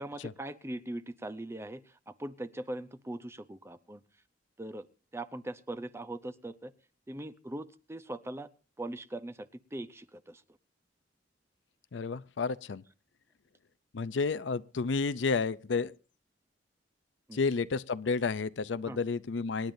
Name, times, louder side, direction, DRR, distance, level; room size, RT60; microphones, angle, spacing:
voice 1, 0.0-4.0 4.6-4.9 5.1-6.7 7.1-8.5 8.8-10.4 17.3-17.4 18.9-19.0, right 1 dB, 15° right, 0.7 m, -40 dB
voice 2, 11.9-12.8 13.9-15.9 17.3-19.7, left 4 dB, 80° left, 0.5 m, -31 dB
26.0 x 10.5 x 2.6 m
head